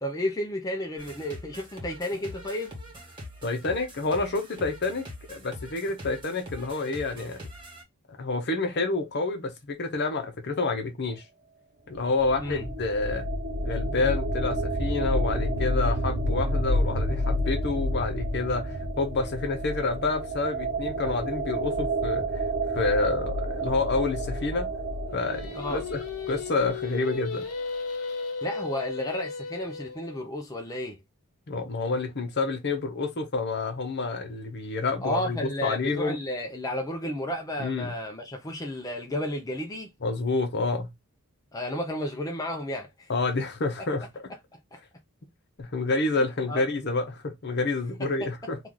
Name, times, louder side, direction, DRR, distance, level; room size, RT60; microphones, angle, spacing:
voice 1, 0.0-2.7 12.4-12.7 25.6-25.8 28.4-31.0 35.0-39.9 41.5-43.1 44.7-44.8 46.2-46.7 48.2-48.3, left 1 dB, 15° left, 0.5 m, -32 dB
sound 1, 1.0-7.8, left 1 dB, 20° right, 1.5 m, -43 dB
voice 2, 3.4-7.5 8.1-11.2 11.9-13.3 13.6-22.4 22.7-24.7 25.1-27.4 31.5-36.2 37.6-38.0 40.0-40.9 43.1-44.1 45.6-48.6, left 3 dB, 50° left, 0.8 m, -28 dB
sound 2, 11.9-26.7, right 1 dB, 45° right, 0.6 m, -29 dB
Singing, 25.1-30.2, left 4 dB, 90° left, 0.8 m, -35 dB
3.0 x 2.4 x 3.7 m
head